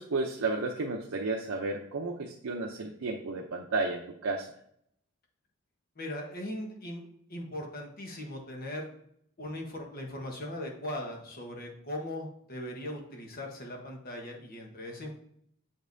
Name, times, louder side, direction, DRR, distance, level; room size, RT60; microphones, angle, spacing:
voice 1, 0.0-4.5, right 3 dB, 80° right, 2 dB, 0.6 m, -32 dB
voice 2, 6.0-7.0 7.3-8.9 9.4-15.1, left 1 dB, 45° left, 1 dB, 1.2 m, -39 dB
7.4 x 5.2 x 2.7 m, 0.69 s
head